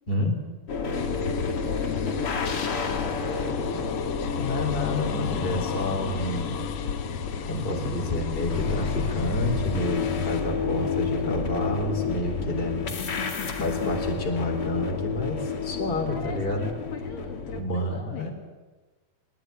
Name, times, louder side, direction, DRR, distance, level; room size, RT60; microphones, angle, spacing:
voice 1, 0.1-0.4 4.4-6.5 7.5-12.8 13.6-16.7 17.5-18.3, left 1 dB, 15° left, 2 dB, 3.7 m, -29 dB
sound 1, 0.7-17.6, left 5 dB, 40° left, 2.6 m, -30 dB
sound 2, 0.9-10.4, left 7 dB, 90° left, 1.3 m, -34 dB
voice 2, 1.3-3.3 12.9-13.9 16.1-18.3, left 6 dB, 65° left, 3 dB, 4.0 m, -40 dB
22.0 x 20.5 x 9.5 m, 1.3 s
omnidirectional pair, 4.4 m